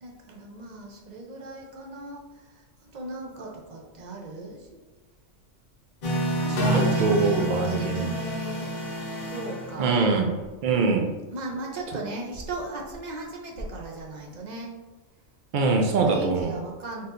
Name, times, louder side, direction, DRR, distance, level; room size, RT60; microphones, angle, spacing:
voice 1, 0.0-4.9 6.4-9.9 11.3-14.7 16.0-17.1, right 2 dB, 45° right, 0 dB, 0.6 m, -37 dB
sound 1, 6.0-10.3, equal, 50° left, 0.9 m, -28 dB
voice 2, 6.6-8.1 9.8-10.3 10.6-11.1 15.5-16.6, right 4 dB, 85° right, 2 dB, 0.4 m, -23 dB
4.2 x 3.6 x 2.5 m, 1.2 s
omnidirectional pair, 1.4 m